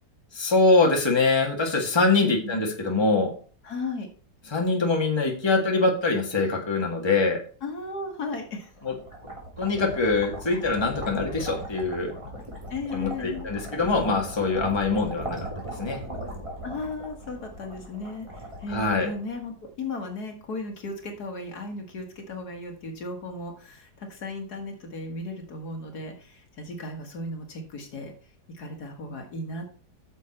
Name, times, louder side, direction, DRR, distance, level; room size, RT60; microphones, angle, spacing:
voice 1, 0.3-3.3 4.5-7.4 8.8-8.9 9.6-12.1 12.9-15.4 15.8-16.0 18.7-19.1, left 3 dB, 15° left, 1 dB, 1.8 m, -23 dB
voice 2, 2.1-2.6 3.6-4.1 7.6-8.7 12.7-13.5 16.6-28.1 28.5-29.7, left 2 dB, 60° left, 3 dB, 2.2 m, -35 dB
sound 1, 8.5-19.7, equal, 15° right, 3.0 m, -38 dB
9.1 x 7.0 x 4.4 m, 0.41 s
omnidirectional pair, 1.9 m